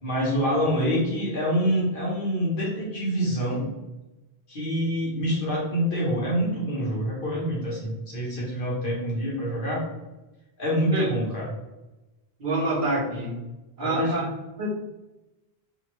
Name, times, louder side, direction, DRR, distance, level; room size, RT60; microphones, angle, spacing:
voice 1, 0.0-3.7 4.5-9.8 10.6-11.5 13.8-14.1, equal, 60° left, -5 dB, 1.3 m, -26 dB
voice 2, 12.4-13.4 13.8-14.2 14.6-14.7, right 2 dB, 55° right, -6 dB, 1.1 m, -26 dB
2.8 x 2.8 x 3.0 m, 1.0 s
omnidirectional pair, 1.0 m